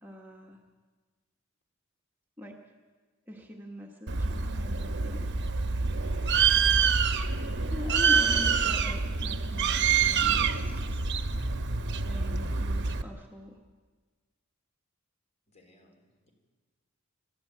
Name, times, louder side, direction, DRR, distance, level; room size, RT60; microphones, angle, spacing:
voice 1, 0.0-0.6 2.4-2.6 3.3-5.3 7.7-11.0 11.9-13.6, left 1 dB, 10° right, -1 dB, 1.4 m, -42 dB
Bird, 4.1-13.0, right 5 dB, 55° right, 1.0 m, -26 dB
voice 2, 5.9-7.6 15.5-16.3, left 1 dB, 30° left, 2 dB, 3.9 m, -55 dB
26.0 x 12.5 x 8.5 m, 1.4 s
head